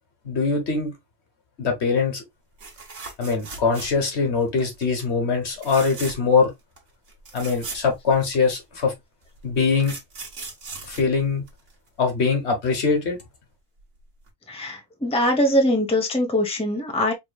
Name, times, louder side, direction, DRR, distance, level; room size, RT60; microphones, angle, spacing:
voice 1, 0.2-0.9 1.6-2.2 3.2-6.5 7.3-8.9 9.4-10.0 10.9-11.4 12.0-13.2, left 5 dB, 60° left, 1.4 m, -22 dB
sound 1, 2.6-4.2 4.6-4.9 5.5-6.4 6.8-6.9 7.1-8.6 9.4-11.9 13.8-14.0 14.3-14.4, right 3 dB, 65° right, 1.7 m, -38 dB
voice 2, 14.5-17.1, equal, 5° left, 0.9 m, -22 dB
4.8 x 3.6 x 2.3 m
omnidirectional pair, 1.3 m